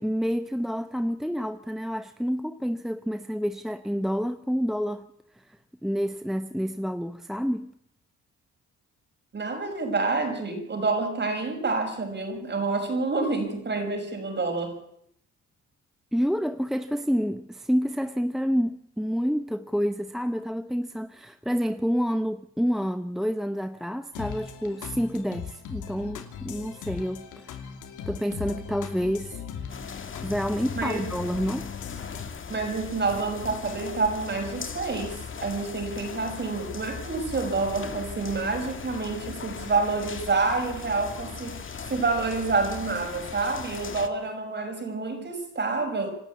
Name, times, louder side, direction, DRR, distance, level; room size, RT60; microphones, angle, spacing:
voice 1, 0.0-5.1 5.8-7.7 16.1-27.5 28.1-29.4 30.2-31.7, equal, ahead, 0.8 m, -28 dB
voice 2, 9.3-14.8 30.7-31.1 32.5-41.6 41.9-46.1, right 3 dB, 35° right, 6.1 m, -28 dB
sound 1, 24.1-32.3, left 7 dB, 80° left, 2.8 m, -38 dB
sound 2, 29.7-44.1, left 6 dB, 40° left, 2.1 m, -39 dB
26.5 x 12.5 x 8.5 m
cardioid pair, 90°, 30 cm